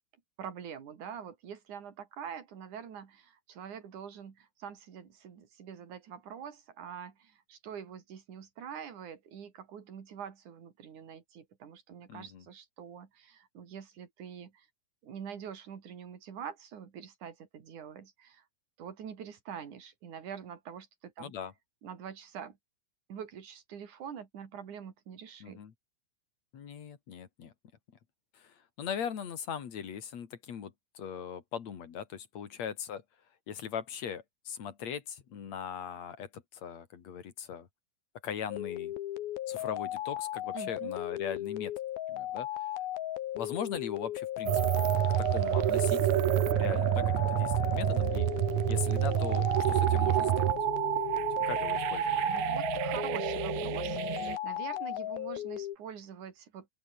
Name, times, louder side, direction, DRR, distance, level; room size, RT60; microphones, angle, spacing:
voice 1, 0.4-14.7 15.0-18.4 18.8-21.4 21.8-22.6 23.1-25.6 40.5-40.9 52.3-56.7, right 8 dB, 55° right, 4.1 m, -45 dB
voice 2, 12.1-12.4 21.2-21.5 25.4-25.7 26.5-27.5 28.3-33.0 33.5-37.7 38.2-38.9 39.5-41.7 42.1-42.5 43.3-44.9 45.2-46.1 46.5-48.3 48.7-50.5 51.5-52.2, left 8 dB, 50° left, 3.1 m, -40 dB
sound 1, 38.5-55.8, left 13 dB, 80° left, 3.3 m, -36 dB
sound 2, 44.5-54.4, right 16 dB, 75° right, 1.8 m, -28 dB
open air
omnidirectional pair, 4.2 m